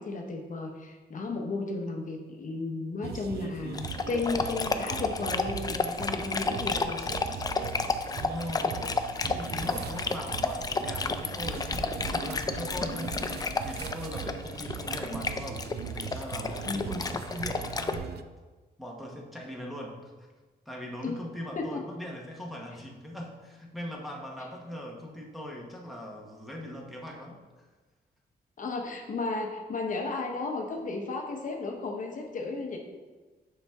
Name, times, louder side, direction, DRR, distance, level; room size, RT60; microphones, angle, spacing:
voice 1, 0.0-7.1 12.9-13.0 16.6-17.0 21.0-21.2 21.6-21.8 28.6-32.8, left 3 dB, 50° left, 2 dB, 0.8 m, -34 dB
sound 1, 3.0-18.2, right 8 dB, 80° right, 0.4 m, -40 dB
Dog, 3.7-18.0, left 4 dB, 25° left, 0.4 m, -32 dB
voice 2, 8.0-13.3 13.6-18.1 18.8-20.3 20.7-27.4, left 1 dB, ahead, -2 dB, 1.0 m, -40 dB
7.0 x 5.8 x 3.5 m, 1.3 s
wide cardioid pair, 140°, 17 cm